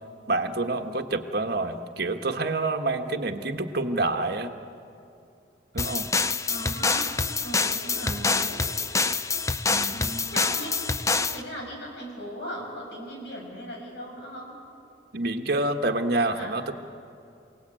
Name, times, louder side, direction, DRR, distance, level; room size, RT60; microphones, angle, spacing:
voice 1, 0.3-4.5 5.7-6.1 8.0-8.4 9.7-10.1 15.1-16.7, right 2 dB, 60° right, 6 dB, 1.4 m, -28 dB
sound 1, 5.8-11.4, left 4 dB, 15° left, 0.6 m, -26 dB
voice 2, 6.5-7.1 7.4-8.6 9.9-10.7 11.1-14.5 16.2-16.6, equal, 70° left, 0 dB, 6.8 m, -38 dB
28.5 x 18.5 x 9.0 m, 2.6 s
head